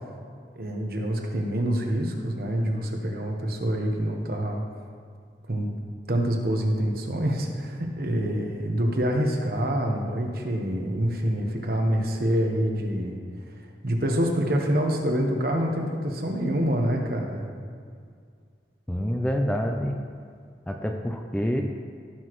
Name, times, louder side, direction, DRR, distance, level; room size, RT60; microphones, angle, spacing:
voice 1, 0.6-4.6 5.5-5.7 6.1-13.2 13.8-17.5, equal, 55° right, 2 dB, 1.1 m, -26 dB
voice 2, 18.9-20.0 20.7-21.6, equal, 5° left, 2 dB, 0.4 m, -27 dB
16.0 x 6.0 x 3.1 m, 2.1 s
head